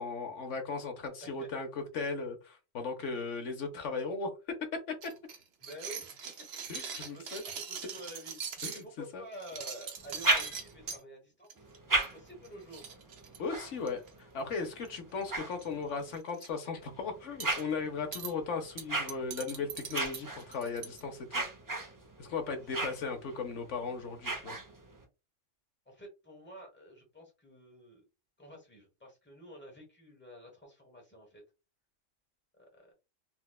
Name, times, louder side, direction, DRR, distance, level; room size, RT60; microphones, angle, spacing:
voice 1, 0.0-4.3 4.9-5.1 6.7-7.4 8.6-9.2 13.4-21.4 22.2-24.6, left 4 dB, 75° left, 1.1 m, -37 dB
sound 1, 5.0-8.8 9.3-11.0 11.5-11.8 12.0-12.2 12.4-12.5 12.7-14.1 14.9-15.2 15.5-15.7 16.1-16.5 17.4-17.6 18.1-18.3 18.8-21.0, right 6 dB, 65° right, 0.9 m, -42 dB
voice 2, 5.6-6.3 7.1-11.5 12.0-12.8 22.6-22.7 25.9-28.0 28.4-31.4 32.6-32.9, equal, 10° left, 1.0 m, -50 dB
sound 2, 10.0-11.0 11.6-16.2 16.8-25.0, right 2 dB, 30° right, 0.3 m, -37 dB
4.4 x 2.1 x 2.2 m
omnidirectional pair, 1.3 m